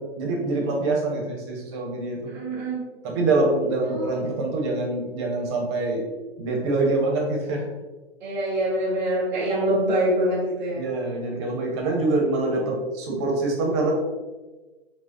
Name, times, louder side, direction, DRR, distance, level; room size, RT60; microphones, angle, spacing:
voice 1, 0.0-2.2 3.0-6.0 6.4-7.7 10.8-13.9, right 2 dB, 25° right, -1 dB, 1.0 m, -25 dB
voice 2, 2.3-2.9 3.8-4.1 8.2-10.8, right 1 dB, 10° right, -10 dB, 0.6 m, -25 dB
4.8 x 2.4 x 3.8 m, 1.2 s
figure-of-eight pair, 125°, 32 cm